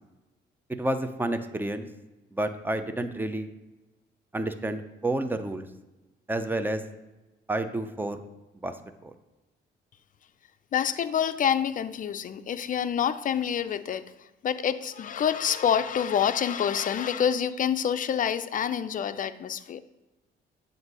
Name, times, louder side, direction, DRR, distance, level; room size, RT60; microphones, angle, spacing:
voice 1, 0.8-1.9 2.3-3.5 4.3-5.7 6.3-6.8 7.5-8.2 8.6-8.7 9.0-9.1, right 1 dB, 10° right, 0.5 m, -30 dB
voice 2, 10.7-14.1 14.4-19.8, left 8 dB, 40° left, 0.4 m, -27 dB
7.9 x 2.6 x 5.4 m
cardioid pair, 90°, 20 cm